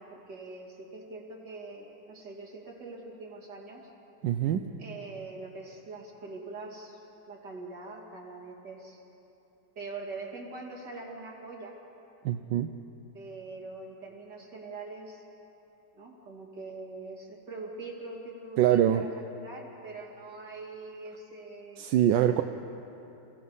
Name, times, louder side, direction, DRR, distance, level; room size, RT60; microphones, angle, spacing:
voice 1, 0.0-3.8 4.8-7.0 7.3-9.0 9.7-11.7 13.1-15.2 15.9-19.1 19.4-21.9, right 3 dB, 70° right, -1 dB, 3.1 m, -43 dB
voice 2, 4.2-4.6 12.2-12.7 18.6-19.0 21.8-22.4, right 11 dB, 90° right, 7 dB, 1.3 m, -24 dB
29.0 x 16.5 x 5.5 m, 3.0 s
omnidirectional pair, 1.9 m